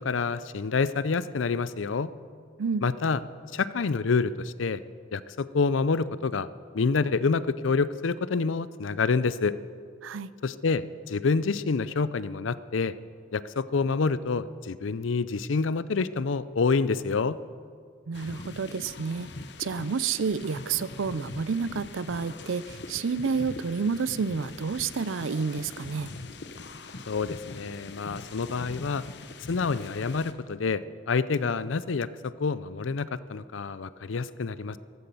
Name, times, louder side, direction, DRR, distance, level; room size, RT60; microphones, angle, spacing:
voice 1, 0.0-2.1 2.8-3.2 3.5-4.8 5.1-6.5 6.7-9.5 10.4-13.0 13.3-17.4 27.1-29.0 29.5-32.1 32.4-34.8, left 4 dB, 85° left, 16 dB, 0.5 m, -27 dB
sound 1, 18.1-30.3, left 3 dB, 60° left, 0.9 m, -42 dB
voice 2, 18.1-19.3 19.6-26.1, right 5 dB, 85° right, 17 dB, 0.5 m, -30 dB
15.0 x 13.0 x 6.9 m, 2.1 s
head